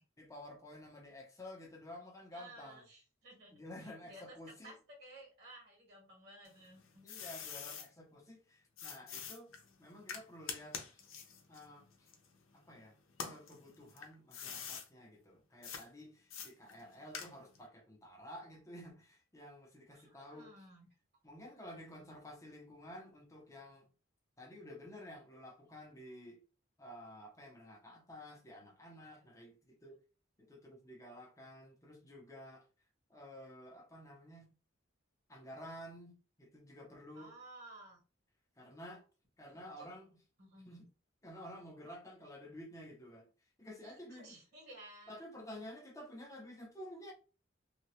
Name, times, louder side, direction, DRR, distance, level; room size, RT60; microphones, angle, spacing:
voice 1, 0.2-2.8 3.5-4.8 7.0-9.5 9.8-11.1 11.5-12.1 12.5-20.5 21.2-23.9 24.4-26.4 26.8-30.0 30.4-32.7 33.1-34.5 35.3-37.3 38.6-39.0 39.4-40.2 40.6-40.8 41.2-43.3 43.6-44.4 45.1-47.1, left 1 dB, 15° left, 0.7 m, -52 dB
voice 2, 2.3-3.6 3.8-7.0 19.9-20.9 21.7-22.1 37.1-38.0 39.4-39.9 40.4-40.8 43.8-45.2, right 2 dB, 55° right, 1.5 m, -56 dB
sound 1, 6.4-7.9 8.8-12.7 13.1-14.9 15.6-15.8 16.3-17.6, left 7 dB, 90° left, 0.7 m, -46 dB
2.8 x 2.3 x 3.0 m
head